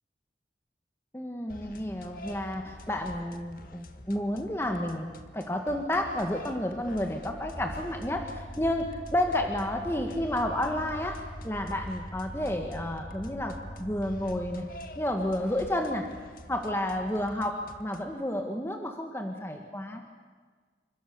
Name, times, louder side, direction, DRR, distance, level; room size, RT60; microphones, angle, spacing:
voice 1, 1.1-14.7 15.0-16.1 16.5-20.0, left 1 dB, 15° left, 3 dB, 1.8 m, -31 dB
sound 1, 1.5-18.2, left 1 dB, 50° left, 1.8 m, -48 dB
sound 2, 7.3-14.6, equal, 50° right, 6.5 m, -43 dB
29.0 x 25.5 x 7.1 m, 1.5 s
head